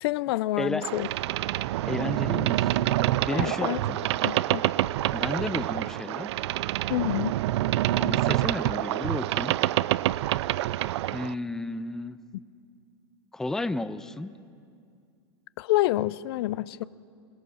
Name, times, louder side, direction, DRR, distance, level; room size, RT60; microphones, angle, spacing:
voice 1, 0.0-1.1 3.3-3.8 4.2-4.6 6.9-7.3 15.6-16.8, left 16 dB, 60° left, 0.5 m, -27 dB
voice 2, 0.6-0.9 1.8-2.8 3.2-4.0 5.1-6.3 8.0-9.5 11.1-12.2 13.3-14.3, left 2 dB, 5° left, 0.5 m, -32 dB
Boat Water vehicle, 0.8-11.3, right 15 dB, 75° right, 0.4 m, -27 dB
26.5 x 17.0 x 6.3 m
supercardioid pair, 145°, 14 cm